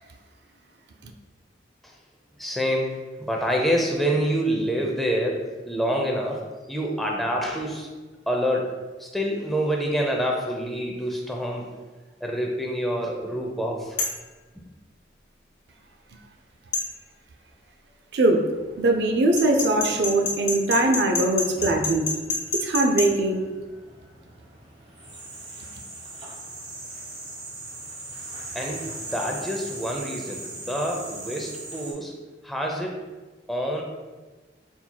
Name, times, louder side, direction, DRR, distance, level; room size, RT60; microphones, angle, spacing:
voice 1, 2.4-2.9 3.2-6.4 6.7-7.9 8.3-8.7 9.0-11.7 12.2-14.0 14.6-14.7 28.5-32.1 32.4-32.9 33.5-33.8, equal, ahead, -1 dB, 0.4 m, -27 dB
sound 1, 14.0-14.2 16.7-16.9 19.4-23.1, left 3 dB, 45° left, 0.8 m, -27 dB
voice 2, 18.1-18.5 18.8-22.1 22.5-23.5, right 2 dB, 65° right, 4 dB, 0.4 m, -21 dB
sound 2, 18.5-31.9, right 2 dB, 30° right, 1.0 m, -40 dB
4.4 x 4.1 x 2.2 m, 1.3 s
head